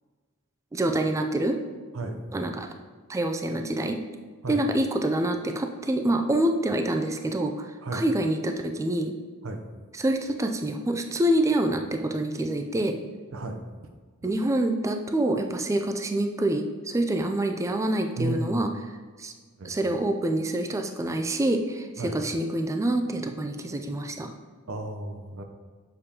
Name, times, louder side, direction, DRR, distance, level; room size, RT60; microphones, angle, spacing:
voice 1, 0.7-1.6 2.3-2.7 3.1-4.0 4.5-9.1 9.9-13.0 14.2-18.7 19.2-19.3 19.6-24.3, right 1 dB, 15° right, 5 dB, 0.3 m, -26 dB
voice 2, 18.2-18.7 19.6-19.7 22.0-22.2 24.7-25.4, right 2 dB, 65° right, 5 dB, 0.7 m, -33 dB
6.9 x 5.0 x 2.8 m, 1.5 s
head